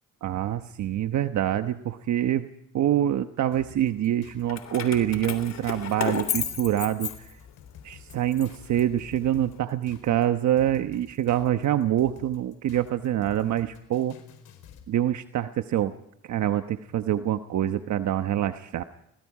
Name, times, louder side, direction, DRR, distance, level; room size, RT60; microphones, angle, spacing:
voice 1, 0.2-2.5 2.7-7.3 7.8-14.2 14.9-15.9 16.2-18.8, right 11 dB, 70° right, 9 dB, 1.1 m, -25 dB
sound 1, 3.5-14.9, left 8 dB, 80° left, 4.5 m, -50 dB
Keys jangling, 4.5-7.7 8.1-9.4, left 8 dB, 60° left, 3.3 m, -33 dB
29.0 x 20.0 x 4.9 m, 0.75 s
cardioid pair, 90°, 30 cm